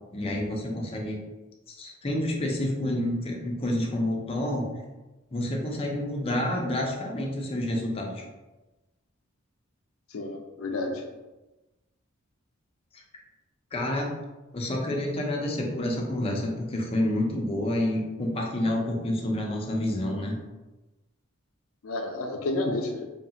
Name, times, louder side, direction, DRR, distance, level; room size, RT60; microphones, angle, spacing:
voice 1, 0.1-1.2 1.8-4.7 5.3-8.2 12.9-13.0 13.7-14.1 14.5-20.4, left 1 dB, 30° left, 0 dB, 0.5 m, -28 dB
voice 2, 10.1-11.0 21.8-23.1, left 2 dB, 80° left, 3 dB, 0.5 m, -30 dB
2.8 x 2.4 x 2.8 m, 1.1 s
head